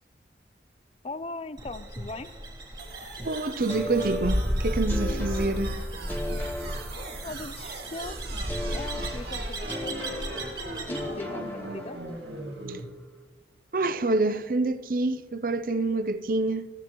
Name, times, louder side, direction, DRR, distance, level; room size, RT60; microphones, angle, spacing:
voice 1, 1.0-2.3 7.0-8.2 8.7-12.0, left 2 dB, 35° left, 0.5 m, -40 dB
sound 1, 1.6-11.1, equal, 25° right, 1.9 m, -33 dB
sound 2, 2.8-12.8, right 2 dB, 75° right, 2.2 m, -41 dB
voice 2, 3.2-5.8 12.7-12.8 13.7-16.7, right 2 dB, 50° right, 0.6 m, -27 dB
sound 3, 3.7-7.6 8.5-12.3, left 1 dB, 10° left, 1.1 m, -37 dB
14.5 x 14.5 x 3.1 m
head